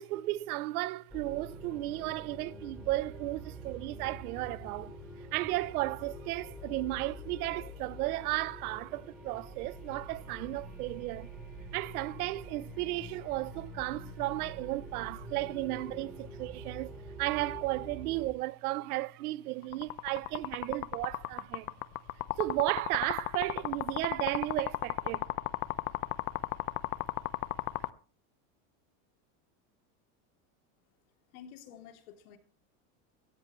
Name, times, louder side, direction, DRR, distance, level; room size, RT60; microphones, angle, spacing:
voice 1, 0.0-11.3 11.7-16.9 17.2-21.7 22.4-25.3, right 18 dB, 90° right, 0.9 m, -34 dB
sound 1, 1.1-18.3, right 1 dB, ahead, 3.4 m, -46 dB
sound 2, 19.7-27.9, left 19 dB, 35° left, 0.7 m, -34 dB
voice 2, 31.3-32.4, left 9 dB, 85° left, 3.4 m, -50 dB
17.5 x 14.0 x 3.2 m
supercardioid pair, 160°, 43 cm